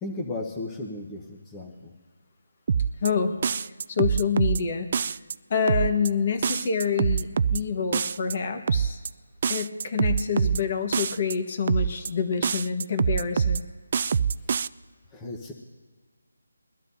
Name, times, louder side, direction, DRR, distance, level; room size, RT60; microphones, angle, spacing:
voice 1, 0.0-1.9 14.4-14.5 15.1-15.5, left 2 dB, 10° left, -1 dB, 1.0 m, -35 dB
sound 1, 2.7-3.1 3.4-4.6 4.9-5.3 5.7-6.1 6.4-7.6 7.9-8.3 8.7-9.1 9.4-10.6 10.9-11.3 11.7-12.1 12.4-13.6 13.9-14.7, right 6 dB, 40° right, 0.3 m, -24 dB
voice 2, 3.0-3.4 3.6-4.9 5.5-9.0 9.5-13.6, left 6 dB, 35° left, 7 dB, 1.4 m, -27 dB
23.0 x 12.5 x 2.7 m, 1.5 s
figure-of-eight pair, 165°, 0 cm